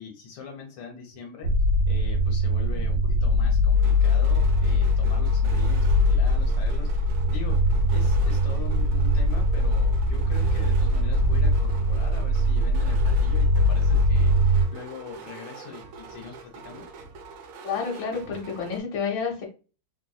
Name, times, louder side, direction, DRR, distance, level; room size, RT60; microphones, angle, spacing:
voice 1, 0.0-1.5 1.9-16.9, left 6 dB, 85° left, 1 dB, 1.7 m, -42 dB
sound 1, 1.4-14.7, left 1 dB, 85° right, 0.8 m, -21 dB
sound 2, 3.7-18.8, right 5 dB, 70° right, 1.2 m, -44 dB
voice 2, 17.6-19.4, left 6 dB, 65° left, -1 dB, 1.5 m, -29 dB
3.6 x 2.5 x 2.2 m, 0.34 s
omnidirectional pair, 2.4 m